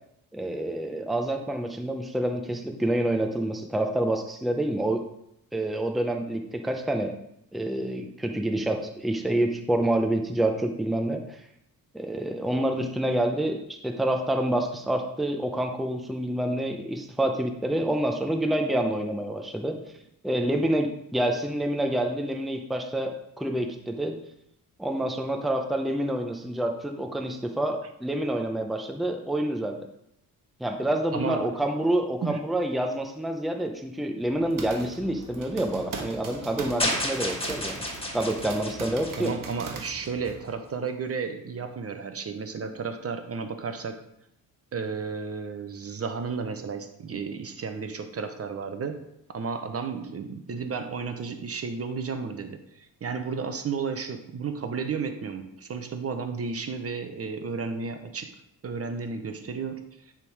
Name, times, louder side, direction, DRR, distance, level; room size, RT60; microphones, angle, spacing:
voice 1, 0.3-5.0 5.5-7.1 7.5-11.4 11.9-19.8 20.2-24.2 24.8-29.8 30.6-37.8 38.1-39.3, right 1 dB, ahead, 3 dB, 0.7 m, -27 dB
voice 2, 31.1-31.5 32.2-32.4 39.1-44.0 44.7-49.0 49.3-58.3 58.6-59.9, right 5 dB, 40° right, 7 dB, 0.8 m, -33 dB
sound 1, 34.2-40.4, right 4 dB, 60° right, 1.3 m, -41 dB
sound 2, 36.8-40.1, left 1 dB, 15° left, 1.7 m, -31 dB
9.7 x 3.7 x 4.7 m, 0.78 s
cardioid pair, 100°, 36 cm